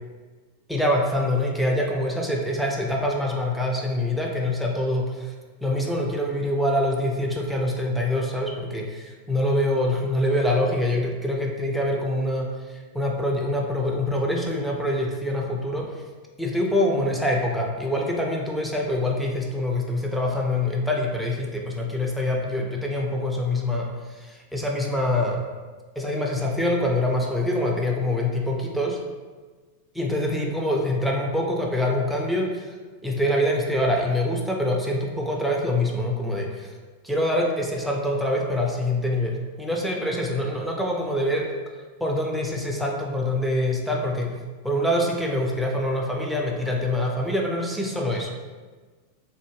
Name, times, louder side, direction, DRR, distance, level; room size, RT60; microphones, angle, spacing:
voice 1, 0.7-5.3 5.6-15.9 16.4-25.4 26.0-29.0 29.9-32.7 33.0-36.7 37.0-41.5 42.0-44.3 44.6-48.3, left 1 dB, ahead, -1 dB, 0.4 m, -25 dB
3.4 x 2.1 x 3.1 m, 1.4 s
figure-of-eight pair, 90°, 0 cm